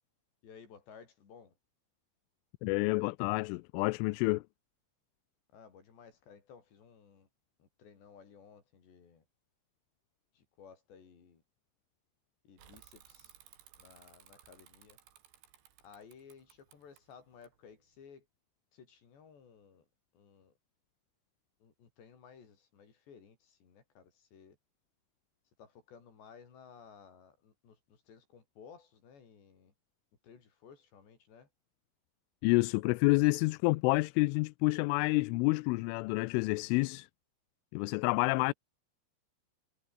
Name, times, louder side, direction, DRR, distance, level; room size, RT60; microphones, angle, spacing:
voice 1, 0.4-1.5 5.5-7.3 7.6-9.3 10.3-11.4 12.5-13.3 13.8-15.0 15.8-18.3 18.7-19.9 20.1-20.5 21.6-24.6 25.6-29.7 30.2-31.5 38.4-38.5, left 6 dB, 60° left, 7.0 m, -57 dB
voice 2, 2.6-4.4 32.4-37.1 37.7-38.5, left 25 dB, 85° left, 3.1 m, -28 dB
Bicycle / Mechanisms, 12.6-18.0, right 11 dB, 65° right, 4.5 m, -60 dB
omnidirectional pair, 5.6 m